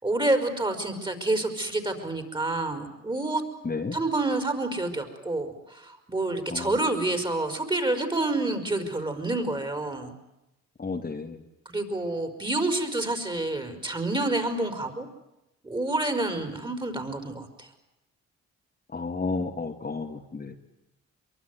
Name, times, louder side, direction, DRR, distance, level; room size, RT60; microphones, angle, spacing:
voice 1, 0.0-3.4 3.9-10.1 11.7-15.1 15.6-17.7, right 2 dB, 15° right, 7 dB, 5.2 m, -28 dB
voice 2, 3.6-4.0 6.5-6.7 10.8-11.4 18.9-20.6, left 4 dB, 30° left, 3 dB, 2.5 m, -32 dB
24.0 x 23.5 x 9.5 m, 0.91 s
cardioid pair, 90°, 30 cm